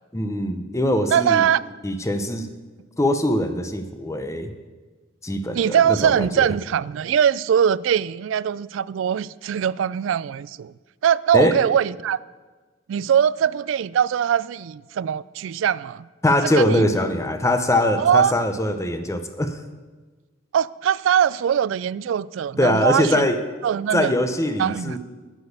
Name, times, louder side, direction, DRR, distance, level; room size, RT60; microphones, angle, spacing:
voice 1, 0.1-1.4 1.8-2.5 3.0-4.5 5.2-6.3 11.3-11.6 16.2-19.6 22.6-23.4 23.9-25.0, left 1 dB, 15° left, 0.7 m, -22 dB
voice 2, 1.1-1.6 5.5-10.7 11.0-12.2 12.9-16.1 16.5-16.8 18.0-18.4 20.5-23.3 23.6-24.1 24.6-25.0, right 8 dB, 75° right, 0.3 m, -21 dB
10.5 x 6.2 x 8.2 m
head